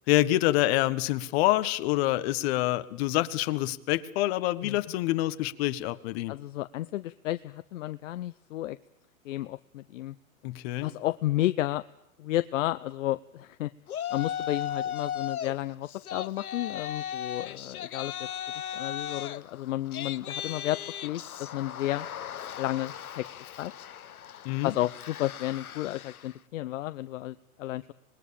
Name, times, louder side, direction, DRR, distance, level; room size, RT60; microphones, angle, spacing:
voice 1, 0.1-6.3 10.4-10.9 24.4-24.7, left 16 dB, 45° left, 12 dB, 1.6 m, -26 dB
voice 2, 6.3-8.8 9.2-10.1 10.8-11.8 12.2-13.7 14.1-18.3 18.7-22.1 22.6-23.2 23.6-23.7 24.6-27.9, left 15 dB, 60° left, 13 dB, 0.9 m, -32 dB
Yell, 13.9-15.5 15.9-26.3, left 9 dB, 85° left, 1.2 m, -37 dB
26.0 x 20.5 x 8.7 m, 0.81 s
hypercardioid pair, 130°, 42 cm